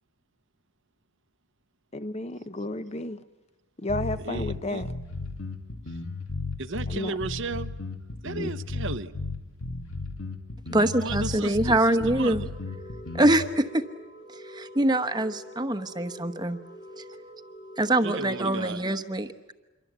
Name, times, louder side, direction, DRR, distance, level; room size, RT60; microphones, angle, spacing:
voice 1, 1.9-3.2 3.8-4.9 6.9-7.1 8.4-8.5, left 1 dB, 30° left, 0.9 m, -32 dB
sound 1, 3.9-13.5, left 3 dB, 70° left, 2.2 m, -34 dB
voice 2, 4.2-4.8 6.6-7.7 8.2-9.1 10.8-12.5 18.0-18.8, right 3 dB, 55° right, 0.9 m, -34 dB
voice 3, 10.7-12.4 13.1-13.8 14.3-16.6 17.0-17.1 17.8-19.5, right 1 dB, 20° right, 1.0 m, -24 dB
sound 2, 12.5-18.7, equal, 45° left, 1.8 m, -46 dB
27.0 x 23.5 x 8.1 m
head